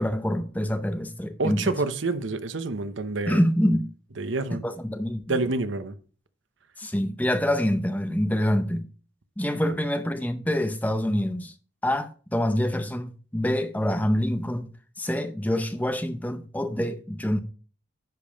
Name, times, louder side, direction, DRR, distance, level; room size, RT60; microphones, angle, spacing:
voice 1, 0.0-1.8 3.3-3.9 4.6-5.4 6.8-8.9 9.4-11.5 11.8-14.7 15.0-17.4, equal, 10° left, 0.7 m, -26 dB
voice 2, 1.4-3.4 4.2-4.6 5.3-5.9, right 3 dB, 80° right, 0.9 m, -28 dB
10.5 x 5.4 x 5.1 m
head